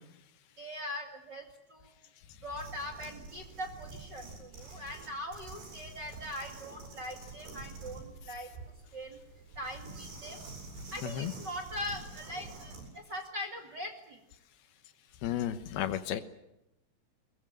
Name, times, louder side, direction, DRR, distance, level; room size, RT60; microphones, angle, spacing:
voice 1, 0.6-1.9 2.4-8.5 8.9-9.2 9.6-10.4 10.9-14.2, left 1 dB, 35° right, 5 dB, 2.0 m, -41 dB
sound 1, 2.5-12.9, right 3 dB, 75° right, 9.8 m, -48 dB
voice 2, 15.2-16.2, left 11 dB, 70° left, 11 dB, 2.9 m, -32 dB
22.0 x 21.5 x 9.2 m, 0.86 s
omnidirectional pair, 4.8 m